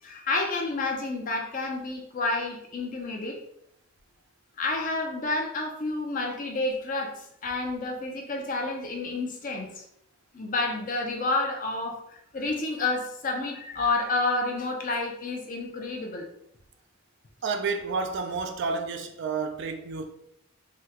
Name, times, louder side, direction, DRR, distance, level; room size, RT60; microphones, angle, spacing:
voice 1, 0.0-3.4 4.6-9.8 10.3-16.3, left 2 dB, 35° left, 0.5 m, -30 dB
voice 2, 17.4-20.0, right 4 dB, 50° right, 0.3 m, -30 dB
3.4 x 2.2 x 2.8 m
head